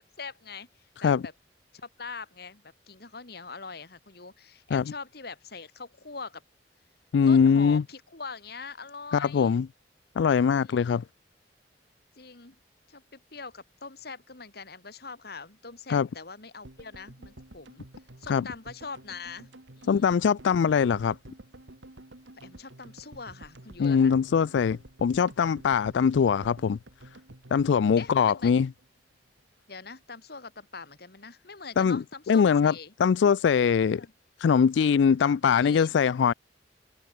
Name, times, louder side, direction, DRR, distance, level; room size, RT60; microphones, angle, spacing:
voice 1, 0.2-1.3 1.8-6.4 7.3-9.5 10.6-11.0 12.2-12.6 12.9-17.9 18.2-19.5 19.8-20.2 22.4-24.2 28.0-28.6 29.7-32.9 33.9-34.1 35.2-36.0, left 4 dB, 60° left, 2.1 m, -43 dB
voice 2, 7.1-7.8 9.1-9.7 10.2-11.0 15.9-16.1 18.3-18.4 19.9-21.1 23.8-26.8 27.5-28.7 31.8-32.0 32.3-32.7 33.0-34.0 34.4-36.3, left 6 dB, 80° left, 0.4 m, -22 dB
sound 1, 16.6-28.9 29.1-29.2 29.4-29.5, right 1 dB, 90° right, 2.5 m, -50 dB
head